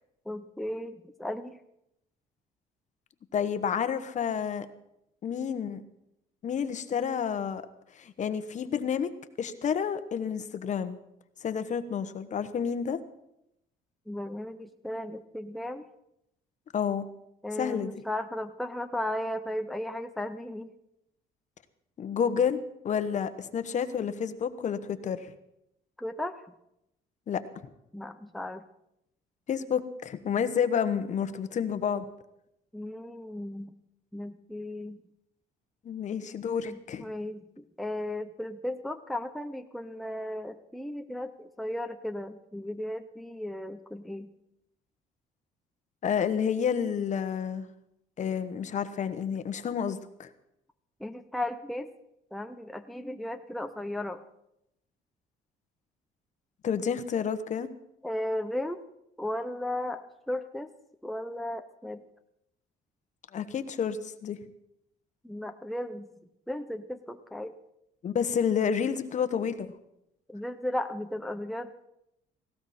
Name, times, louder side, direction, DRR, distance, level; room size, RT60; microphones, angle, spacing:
voice 1, 0.3-1.6 14.1-15.8 17.4-20.7 26.0-26.5 27.9-28.6 32.7-33.7 34.1-35.0 36.6-44.3 51.0-51.9 52.3-54.2 58.0-58.8 59.2-60.7 61.0-62.0 65.2-66.1 66.5-67.6 70.3-71.9, left 1 dB, ahead, 7 dB, 0.7 m, -35 dB
voice 2, 3.3-4.7 5.2-5.8 6.4-7.6 8.0-9.1 9.4-11.0 11.4-13.0 16.7-17.1 17.6-17.9 22.0-22.6 22.8-25.2 27.3-27.4 29.5-32.0 35.8-37.1 46.0-47.7 48.2-50.3 56.6-57.7 63.3-64.4 68.0-69.7, left 7 dB, 45° left, 11 dB, 1.2 m, -29 dB
18.0 x 16.5 x 4.3 m, 0.82 s
cardioid pair, 110°, 17 cm